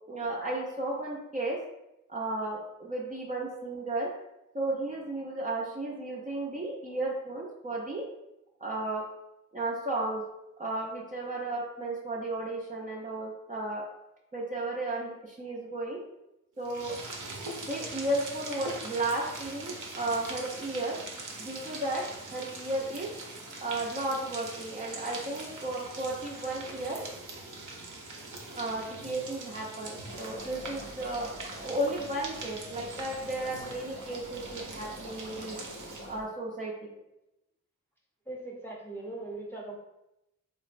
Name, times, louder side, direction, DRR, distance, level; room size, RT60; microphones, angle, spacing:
voice 1, 0.1-1.6 2.1-4.1 4.5-8.0 8.6-9.0 9.5-10.2 10.6-13.8 14.3-16.0 16.6-16.9 17.7-21.0 21.4-22.0 22.3-23.1 23.6-27.0 28.5-35.6 36.1-37.0, right 2 dB, 25° right, -5 dB, 0.5 m, -34 dB
sound 1, 16.6-36.2, right 2 dB, 75° right, 0.6 m, -42 dB
sound 2, 30.0-36.2, equal, 40° left, 0.5 m, -48 dB
voice 2, 38.2-39.7, right 2 dB, 5° left, -3 dB, 0.7 m, -40 dB
3.7 x 2.0 x 2.5 m, 0.90 s
wide cardioid pair, 75°, 31 cm